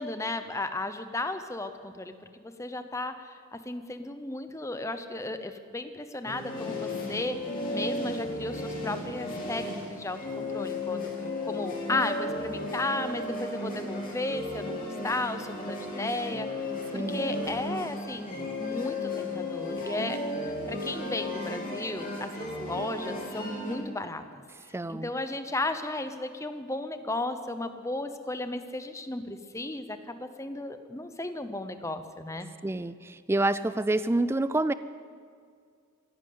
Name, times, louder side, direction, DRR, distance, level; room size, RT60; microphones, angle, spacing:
voice 1, 0.0-11.1 11.4-24.2 24.9-32.5, left 2 dB, 15° left, 9 dB, 0.8 m, -34 dB
sound 1, 6.2-23.7, left 1 dB, 40° left, 3.5 m, -34 dB
voice 2, 16.9-17.2 24.7-25.1 32.6-34.7, right 2 dB, 10° right, 14 dB, 0.3 m, -27 dB
15.5 x 11.0 x 8.5 m, 2.2 s
head